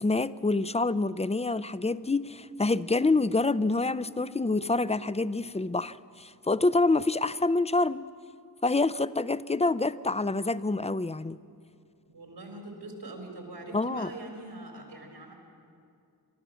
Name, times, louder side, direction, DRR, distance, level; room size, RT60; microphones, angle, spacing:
voice 1, 0.0-8.1 8.6-11.4 13.7-14.1, left 3 dB, 15° left, 16 dB, 0.4 m, -27 dB
voice 2, 12.1-15.3, right 2 dB, 85° right, 1 dB, 4.4 m, -43 dB
28.5 x 13.0 x 7.0 m, 2.4 s
wide cardioid pair, 60°, 39 cm